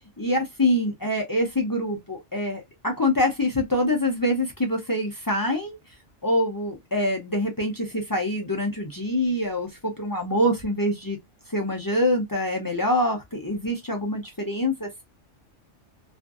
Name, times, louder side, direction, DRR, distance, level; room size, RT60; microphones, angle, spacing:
voice 1, 0.2-5.8 6.2-11.2 11.5-15.0, left 1 dB, 30° left, 0.4 m, -25 dB
2.5 x 2.5 x 2.3 m
omnidirectional pair, 1.2 m